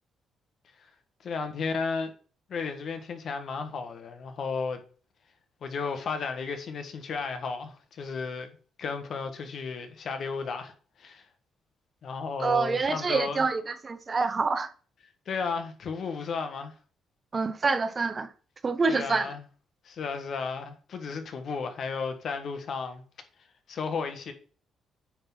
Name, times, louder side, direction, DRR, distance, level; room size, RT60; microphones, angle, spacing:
voice 1, 1.2-2.1 2.5-4.8 5.6-10.7 11.0-11.2 12.0-13.4 15.3-16.7 18.9-19.4 19.8-23.0 23.7-24.3, left 5 dB, 60° left, 1.3 m, -33 dB
voice 2, 12.4-14.7 17.3-18.3 18.6-19.3, right 4 dB, 35° right, 0.9 m, -26 dB
9.0 x 3.8 x 5.5 m
cardioid pair, 90°, 0 cm